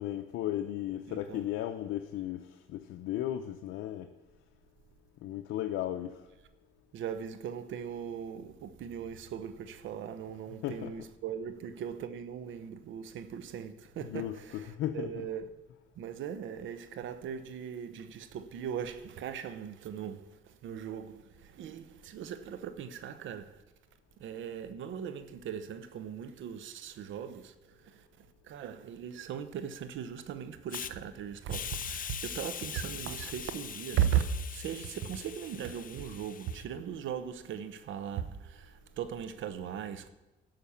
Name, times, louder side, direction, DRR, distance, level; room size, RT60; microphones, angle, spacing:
voice 1, 0.0-4.1 5.2-6.2 10.6-10.9 14.0-15.3, left 12 dB, 90° left, 0.6 m, -35 dB
voice 2, 1.1-1.4 6.9-15.5 16.0-23.6 24.2-40.1, right 8 dB, 80° right, 0.9 m, -38 dB
Hiss, 30.7-30.9 31.5-36.6, left 8 dB, 45° left, 0.6 m, -42 dB
11.5 x 5.9 x 7.1 m
cardioid pair, 90°, 20 cm